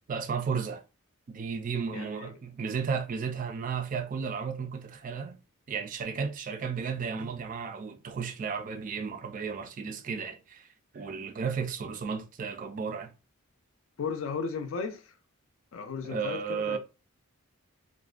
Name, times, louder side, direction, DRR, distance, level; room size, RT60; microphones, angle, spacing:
voice 1, 0.1-0.8 1.3-5.4 5.7-10.7 10.9-13.1 16.0-16.8, right 6 dB, 40° right, 0.3 m, -33 dB
voice 2, 1.9-2.3 14.0-15.1 15.7-16.8, left 5 dB, 65° left, 0.4 m, -35 dB
2.4 x 2.1 x 2.4 m
head